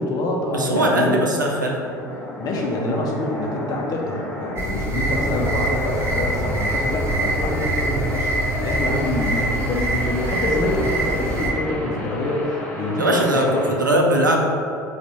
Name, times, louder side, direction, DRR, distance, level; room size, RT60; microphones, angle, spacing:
voice 1, 0.0-1.3 2.4-8.3 8.6-13.8, left 2 dB, 40° left, 0 dB, 0.8 m, -25 dB
voice 2, 0.5-1.8 13.0-14.4, right 1 dB, 85° right, 0 dB, 0.5 m, -20 dB
sound 1, 1.0-13.7, equal, 10° left, 1.0 m, -32 dB
sound 2, 4.6-11.5, right 1 dB, 25° right, 1.1 m, -24 dB
4.0 x 2.5 x 4.5 m, 2.6 s
figure-of-eight pair, 65°, 10 cm